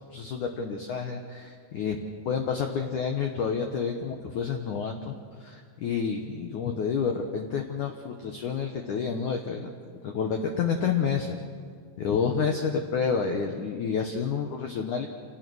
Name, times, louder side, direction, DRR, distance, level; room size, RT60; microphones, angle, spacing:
voice 1, 0.1-2.0 2.3-9.7 10.0-11.4 12.0-15.1, left 6 dB, 70° left, 3 dB, 1.8 m, -29 dB
27.0 x 18.0 x 6.3 m, 2.1 s
omnidirectional pair, 5.1 m